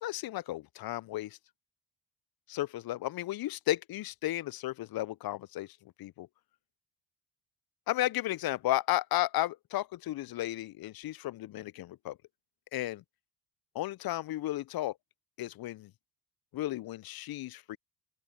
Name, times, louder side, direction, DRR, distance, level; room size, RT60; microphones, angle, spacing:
voice 1, 0.0-1.4 2.5-5.7 6.0-6.3 7.9-12.2 12.7-13.0 13.7-14.9 15.4-15.9 16.5-17.8, left 15 dB, 45° left, 0.7 m, -33 dB
open air
hypercardioid pair, 50°, 49 cm